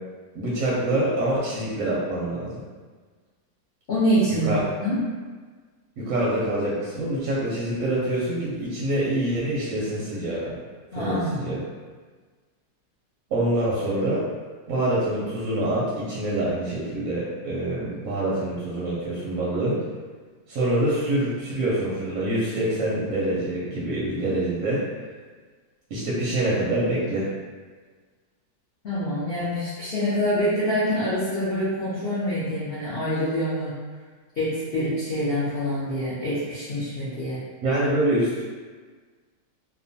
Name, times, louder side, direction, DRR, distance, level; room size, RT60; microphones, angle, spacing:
voice 1, 0.3-2.6 4.3-4.6 6.0-10.6 10.9-11.6 13.3-14.2 14.7-19.8 20.5-24.8 25.9-27.3 37.6-38.4, right 1 dB, 70° right, -6 dB, 0.8 m, -25 dB
voice 2, 3.9-5.0 10.9-11.6 28.8-33.7 34.3-37.4, equal, 70° left, -11 dB, 0.5 m, -26 dB
2.8 x 2.1 x 2.6 m, 1.5 s
omnidirectional pair, 1.9 m